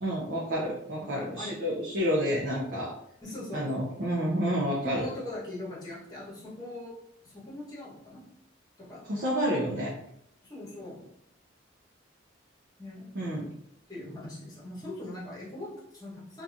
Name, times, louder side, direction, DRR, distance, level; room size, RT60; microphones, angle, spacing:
voice 1, 0.0-2.9 3.5-5.1 9.1-9.9 13.1-13.5, equal, 55° right, -4 dB, 0.5 m, -29 dB
voice 2, 1.0-1.6 3.2-3.6 4.8-6.9 7.2-8.2 8.8-9.0 10.4-11.0 12.8-13.2 13.9-16.4, left 1 dB, 20° left, -6 dB, 1.0 m, -41 dB
2.7 x 2.3 x 2.5 m, 0.75 s
head